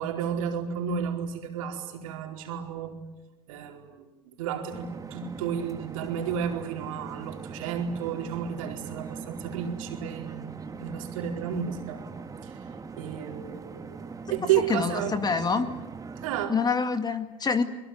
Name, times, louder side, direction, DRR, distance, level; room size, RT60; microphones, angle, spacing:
voice 1, 0.0-3.0 3.5-12.0 12.4-12.6 13.0-15.1 16.2-16.5, right 8 dB, 75° right, 2 dB, 4.6 m, -32 dB
sound 1, 4.7-16.5, right 5 dB, 20° right, 1.8 m, -41 dB
voice 2, 14.7-15.7 16.5-17.6, left 5 dB, 25° left, 9 dB, 2.1 m, -26 dB
25.0 x 22.0 x 9.5 m, 1.1 s
hypercardioid pair, 95°, 17 cm